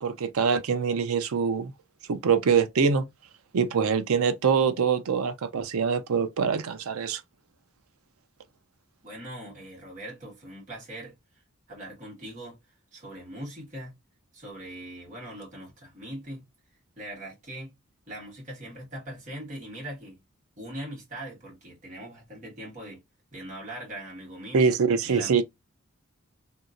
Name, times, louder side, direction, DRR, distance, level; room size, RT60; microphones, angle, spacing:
voice 1, 0.0-1.7 2.1-3.0 3.5-7.2 24.5-25.4, right 6 dB, 85° right, 0.5 m, -24 dB
voice 2, 9.0-11.1 11.7-12.6 12.9-13.9 14.3-16.4 17.0-17.7 18.1-20.2 20.6-23.0 23.3-24.6 25.0-25.4, right 1 dB, 35° right, 1.5 m, -41 dB
2.8 x 2.6 x 2.4 m
head